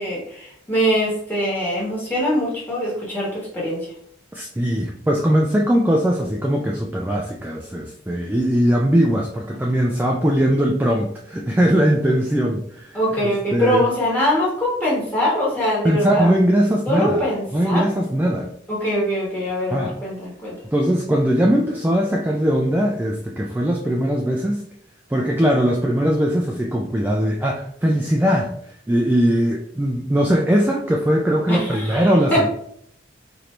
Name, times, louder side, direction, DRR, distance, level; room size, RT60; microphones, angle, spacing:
voice 1, 0.0-3.9 12.9-16.3 16.9-17.9 18.7-20.6 31.5-32.5, equal, 10° left, -5 dB, 1.2 m, -23 dB
voice 2, 4.3-13.9 15.8-17.3 17.5-18.5 19.7-19.9 20.7-24.6 25.1-32.5, equal, 10° right, -1 dB, 0.3 m, -20 dB
4.3 x 2.6 x 3.1 m, 0.67 s
head